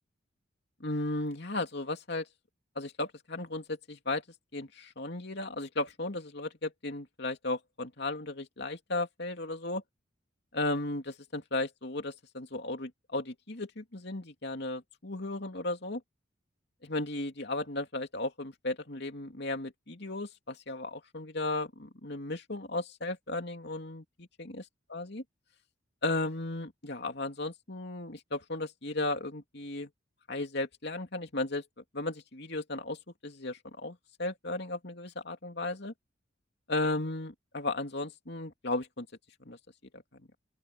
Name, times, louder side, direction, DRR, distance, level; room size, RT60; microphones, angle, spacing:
voice 1, 0.8-2.3 2.7-4.2 4.5-9.8 10.5-16.0 16.8-24.6 24.9-25.2 26.0-29.9 30.3-31.6 31.9-35.9 36.7-39.1 39.4-39.6 39.9-40.2, left 2 dB, 60° left, 3.0 m, -35 dB
open air
head